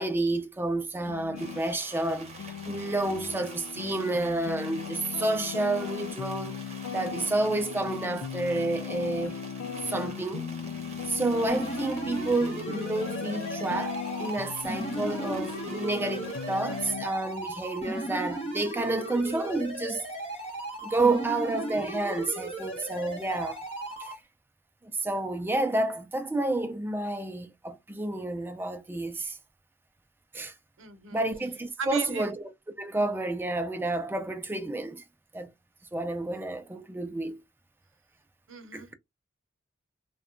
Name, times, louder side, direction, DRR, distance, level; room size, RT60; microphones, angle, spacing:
voice 1, 0.0-6.6 6.9-9.4 9.8-10.6 11.1-20.0 20.8-23.6 24.0-24.2 24.8-29.4 30.3-30.5 31.1-32.4 32.8-35.0 35.3-35.5 35.9-37.4 38.7-38.9, right 2 dB, 10° right, 0.3 m, -30 dB
sound 1, 1.1-1.6 2.1-17.1, left 7 dB, 80° left, 0.4 m, -38 dB
sound 2, 1.3-16.9, right 2 dB, 35° right, 0.8 m, -47 dB
sound 3, 11.5-24.1, right 1 dB, 30° left, 1.0 m, -36 dB
voice 2, 30.8-31.2 31.8-32.3 38.5-38.9, right 5 dB, 70° right, 0.6 m, -37 dB
2.7 x 2.2 x 2.5 m
head